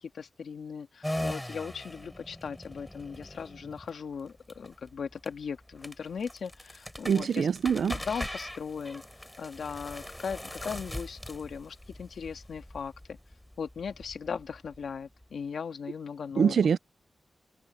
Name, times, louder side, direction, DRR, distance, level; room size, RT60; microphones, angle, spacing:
voice 1, 0.0-7.5 8.0-9.0 9.4-13.2 13.6-16.7, left 6 dB, 85° left, 1.7 m, -38 dB
sound 1, 1.0-15.3, left 1 dB, 5° left, 3.4 m, -41 dB
voice 2, 7.0-8.0 16.4-16.8, right 7 dB, 85° right, 0.4 m, -24 dB
wide cardioid pair, 175°, 0 cm